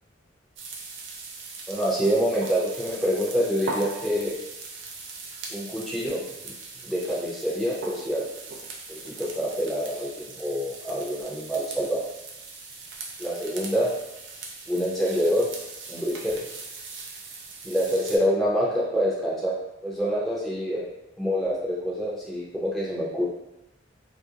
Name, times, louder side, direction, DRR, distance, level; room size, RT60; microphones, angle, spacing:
sound 1, 0.6-18.2, right 3 dB, 70° right, 0.4 m, -40 dB
voice 1, 1.7-4.4 5.5-6.2 6.9-8.3 8.9-12.0 13.2-13.9 14.7-15.5 15.9-16.4 17.6-19.5 19.8-20.9 21.2-23.2, equal, ahead, -8 dB, 0.6 m, -26 dB
2.4 x 2.1 x 2.8 m, 0.96 s
head